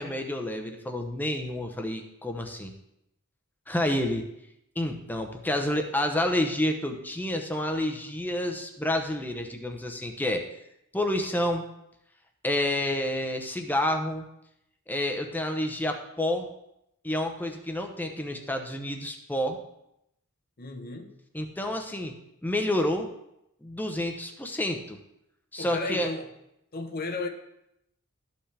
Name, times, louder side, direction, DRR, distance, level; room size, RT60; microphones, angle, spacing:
voice 1, 0.0-2.7 3.7-4.3 4.8-10.4 10.9-11.7 12.4-14.3 14.9-16.5 17.0-19.6 21.3-22.1 22.4-23.1 23.6-25.0 25.5-26.1, left 1 dB, 10° left, 0.8 m, -29 dB
voice 2, 20.6-21.1 25.6-26.3 26.7-27.3, left 3 dB, 45° left, 0.9 m, -34 dB
13.5 x 5.6 x 3.4 m
head